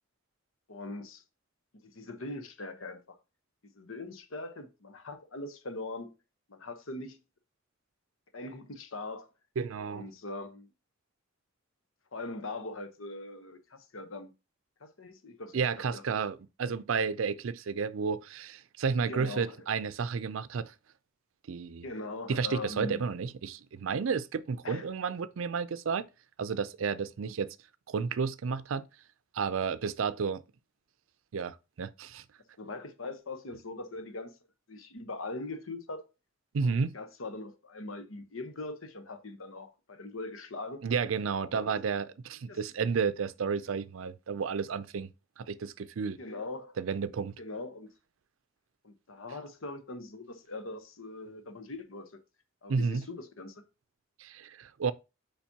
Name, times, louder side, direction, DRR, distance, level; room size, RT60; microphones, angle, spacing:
voice 1, 0.7-1.2 1.8-3.2 3.7-6.1 6.5-7.2 8.3-9.3 9.9-10.7 12.1-14.3 14.8-16.0 19.1-19.7 21.8-23.0 24.6-24.9 32.6-34.4 34.7-36.0 36.6-40.9 41.4-41.8 42.5-42.6 46.2-46.8 47.4-47.9 48.8-52.1 52.6-53.6, left 2 dB, 90° left, 1.1 m, -41 dB
voice 2, 9.6-10.1 15.5-20.7 21.5-21.8 22.3-26.1 26.4-27.5 27.9-28.9 29.3-30.4 31.3-32.2 36.5-36.9 40.8-45.1 45.4-46.2 46.8-47.4 52.7-53.1 54.2-54.9, right 5 dB, 80° right, 0.4 m, -32 dB
7.2 x 5.1 x 2.8 m
head